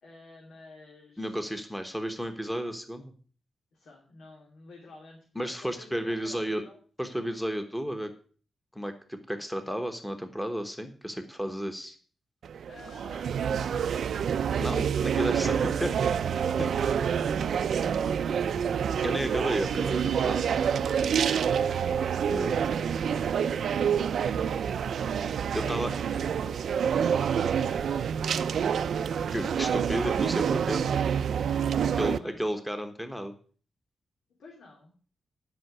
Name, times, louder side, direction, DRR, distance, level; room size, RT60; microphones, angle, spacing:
voice 1, 0.0-1.6 3.7-6.8 12.7-14.2 15.6-15.9 16.5-18.2 19.0-19.8 20.6-21.9 22.8-23.6 25.1-29.6 31.4-32.4 34.4-34.9, left 3 dB, 90° left, -2 dB, 3.1 m, -51 dB
voice 2, 1.2-3.1 5.3-6.6 7.0-8.1 8.7-12.0 14.6-15.9 16.3-16.4 19.0-20.5 22.3-22.5 25.5-25.9 29.3-30.8 32.0-33.3, equal, 5° left, 7 dB, 1.2 m, -32 dB
sound 1, 12.4-32.2, right 7 dB, 75° right, 0.5 m, -27 dB
11.5 x 5.8 x 7.7 m, 0.42 s
wide cardioid pair, 165°, 0 cm